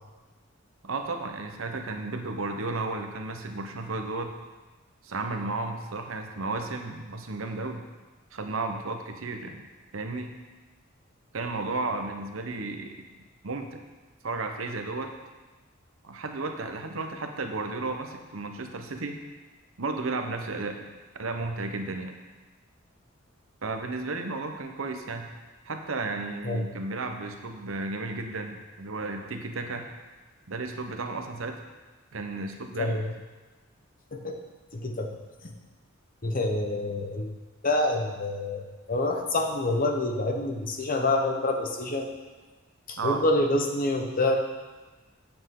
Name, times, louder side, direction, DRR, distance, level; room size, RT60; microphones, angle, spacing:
voice 1, 0.8-4.3 5.0-7.8 8.3-9.6 9.9-10.3 11.3-13.0 13.4-13.8 14.2-15.1 16.0-19.2 19.8-20.8 21.1-22.2 23.6-25.3 25.7-29.9 30.5-31.6 32.1-33.0 43.0-43.2, right 3 dB, 85° right, 5 dB, 0.9 m, -33 dB
voice 2, 32.8-33.1 34.1-34.4 34.7-35.2 35.4-35.5 36.2-37.3 37.6-42.1 42.9-44.4, left 2 dB, 45° left, 3 dB, 1.0 m, -27 dB
8.8 x 7.8 x 3.8 m, 1.2 s
head